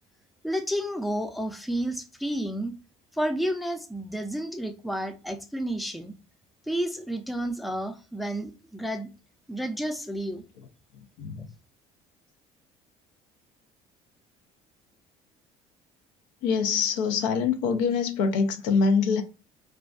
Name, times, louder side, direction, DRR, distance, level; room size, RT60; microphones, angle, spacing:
voice 1, 0.4-2.8 3.1-6.1 6.7-9.1 9.5-10.4, right 1 dB, ahead, 0.3 m, -31 dB
voice 2, 16.4-19.2, left 5 dB, 90° left, 0.5 m, -24 dB
2.3 x 2.2 x 2.4 m
cardioid pair, 110°, 15 cm